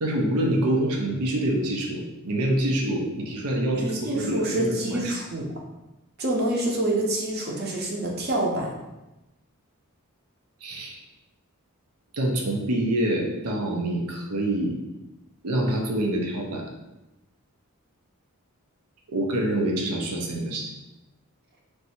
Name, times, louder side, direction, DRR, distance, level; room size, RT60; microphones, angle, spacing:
voice 1, 0.0-5.0 10.6-11.0 12.1-14.8 15.4-16.6 19.1-20.7, right 1 dB, 90° right, 0 dB, 0.7 m, -26 dB
voice 2, 3.7-5.5 6.2-8.7, right 1 dB, 45° right, -1 dB, 0.8 m, -27 dB
3.3 x 2.7 x 4.3 m, 0.98 s
head